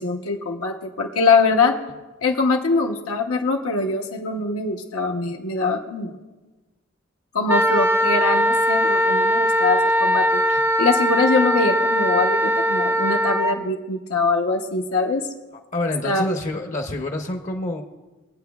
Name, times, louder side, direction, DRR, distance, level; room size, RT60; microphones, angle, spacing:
voice 1, 0.0-1.8 2.2-6.2 7.3-15.3 16.0-16.4, left 3 dB, 75° left, 1 dB, 0.8 m, -23 dB
Wind instrument woodwind instrument, 7.5-13.5, equal, 10° right, 0.5 m, -20 dB
voice 2, 15.7-17.8, left 2 dB, 35° left, 4 dB, 0.7 m, -27 dB
22.5 x 8.6 x 2.3 m, 1.2 s
head